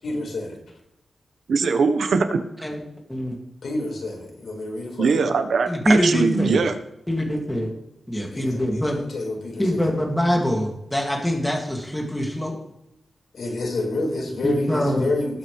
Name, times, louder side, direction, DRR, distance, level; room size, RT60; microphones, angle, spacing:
voice 1, 0.0-0.6 3.6-5.2 8.3-9.9 13.3-15.4, left 2 dB, 70° left, -1 dB, 5.0 m, -29 dB
voice 2, 1.5-2.4 5.0-6.8, right 5 dB, 80° right, 8 dB, 1.3 m, -21 dB
voice 3, 5.7-6.6 7.1-7.7 8.1-9.0 9.6-12.5 14.4-15.1, equal, 5° left, -1 dB, 2.5 m, -23 dB
19.5 x 9.0 x 3.4 m, 0.83 s
wide cardioid pair, 155°, 0 cm